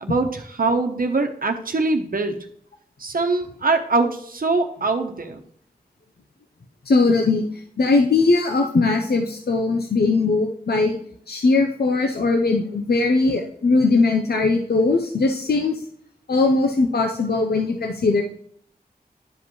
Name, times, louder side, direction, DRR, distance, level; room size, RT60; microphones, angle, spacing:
voice 1, 0.0-2.4 3.0-5.4, right 3 dB, 65° right, 5 dB, 1.0 m, -23 dB
voice 2, 6.9-7.5 7.8-11.0 11.3-15.8 16.3-18.2, left 3 dB, 85° left, 3 dB, 0.8 m, -20 dB
11.5 x 5.2 x 3.2 m, 0.65 s
wide cardioid pair, 75°, 16 cm